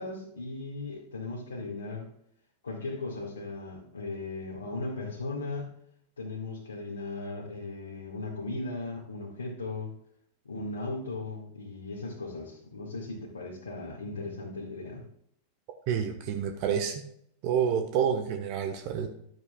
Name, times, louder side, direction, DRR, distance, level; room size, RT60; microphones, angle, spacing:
voice 1, 0.0-2.1 2.6-5.7 6.2-9.9 10.4-15.1, left 3 dB, 75° left, -5 dB, 2.0 m, -37 dB
voice 2, 15.9-17.0 17.4-19.1, right 8 dB, 45° right, 4 dB, 1.3 m, -28 dB
12.5 x 9.7 x 2.4 m, 0.70 s
figure-of-eight pair, 90°, 0 cm